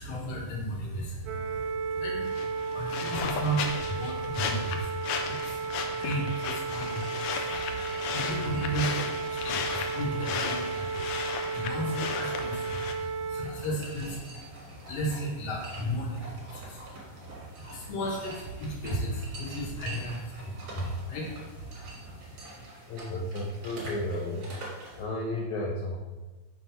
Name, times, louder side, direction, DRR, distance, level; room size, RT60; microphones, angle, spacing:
voice 1, 0.0-22.6, right 1 dB, 55° left, -2 dB, 2.0 m, -35 dB
sound 1, 1.3-13.5, right 5 dB, 80° right, 2.1 m, -34 dB
sound 2, 2.3-12.9, left 6 dB, 90° left, 1.8 m, -35 dB
sound 3, 6.7-25.0, right 2 dB, 55° right, 2.5 m, -47 dB
voice 2, 22.9-24.4 25.0-26.0, left 1 dB, 70° left, -2 dB, 1.8 m, -33 dB
5.9 x 3.3 x 5.6 m, 1.2 s
omnidirectional pair, 4.1 m